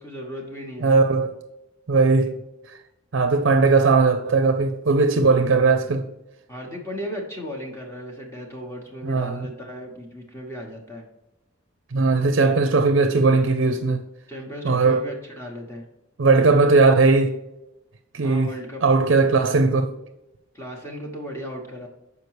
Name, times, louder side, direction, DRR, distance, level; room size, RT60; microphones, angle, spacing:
voice 1, 0.0-0.9 6.5-11.0 14.3-15.8 18.2-19.2 20.5-21.9, equal, 15° left, 1.0 m, -36 dB
voice 2, 0.8-1.3 1.9-2.4 2.7-2.8 3.1-6.1 9.0-9.5 11.9-14.0 14.6-15.1 16.2-17.4 18.1-18.5 18.8-19.9, right 3 dB, 60° right, 0.5 m, -18 dB
6.7 x 4.8 x 4.7 m
head